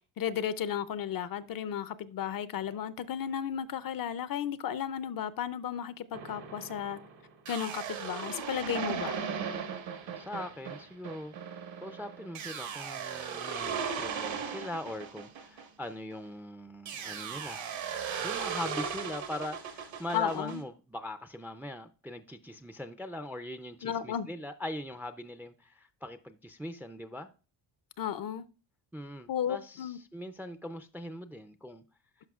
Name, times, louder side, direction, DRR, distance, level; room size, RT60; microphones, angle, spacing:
voice 1, 0.2-7.0 7.5-9.2 20.1-20.6 23.8-24.3 28.0-28.4 29.3-30.0, left 9 dB, 45° left, 0.5 m, -34 dB
sound 1, 6.1-16.3 16.9-20.6, right 7 dB, 70° right, 1.5 m, -37 dB
voice 2, 10.2-17.7 18.2-27.3 28.9-31.8, left 1 dB, 5° right, 0.4 m, -41 dB
12.0 x 4.9 x 2.4 m
cardioid pair, 100°, 48 cm